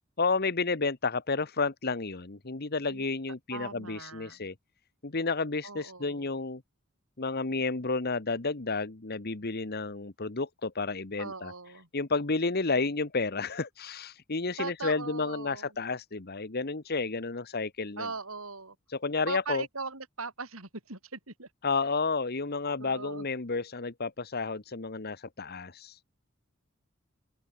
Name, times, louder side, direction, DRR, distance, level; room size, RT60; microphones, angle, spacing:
voice 1, 0.2-4.5 5.0-6.6 7.2-11.5 11.9-18.1 18.9-19.7 21.6-26.0, left 4 dB, 50° left, 1.4 m, -31 dB
voice 2, 3.5-4.4 5.6-6.3 11.2-11.9 14.6-15.7 18.0-18.7 19.3-21.5 22.8-23.2, right 4 dB, 90° right, 6.0 m, -39 dB
open air
head